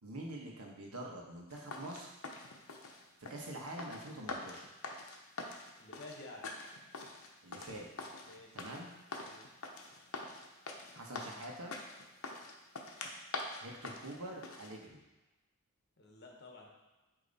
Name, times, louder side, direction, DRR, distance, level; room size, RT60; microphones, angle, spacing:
voice 1, 0.0-2.2 3.3-4.7 7.4-7.9 8.5-8.9 10.9-11.7 13.6-15.0, right 1 dB, 85° right, 0 dB, 1.2 m, -45 dB
sound 1, 1.5-14.7, left 3 dB, 70° left, 0.8 m, -45 dB
voice 2, 5.8-6.5 8.2-8.6 9.2-9.5 16.0-16.7, left 2 dB, 50° left, 0 dB, 1.1 m, -52 dB
8.5 x 3.0 x 4.0 m, 1.1 s
head